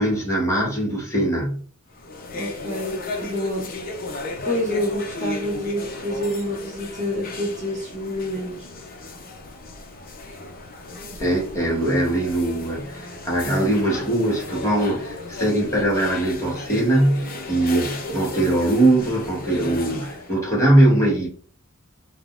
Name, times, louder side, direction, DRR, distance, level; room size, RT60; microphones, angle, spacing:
voice 1, 0.0-1.6 11.2-21.3, right 1 dB, 15° left, -6 dB, 1.2 m, -21 dB
sound 1, 1.9-20.4, left 2 dB, 45° left, 0.5 m, -34 dB
voice 2, 2.3-2.9 3.2-3.7 4.4-8.7, left 1 dB, 35° right, -3 dB, 1.0 m, -27 dB
3.7 x 2.2 x 2.4 m, 0.43 s
head